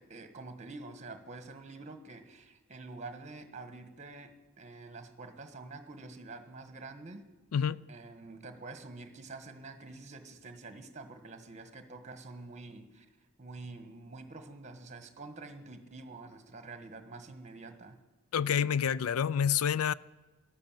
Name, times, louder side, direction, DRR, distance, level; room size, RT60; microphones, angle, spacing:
voice 1, 0.0-7.3 7.9-13.1 13.4-18.0, right 3 dB, 35° right, 1.4 m, -47 dB
voice 2, 7.5-7.8 18.3-19.9, left 8 dB, 85° left, 0.4 m, -28 dB
13.5 x 12.0 x 9.0 m
head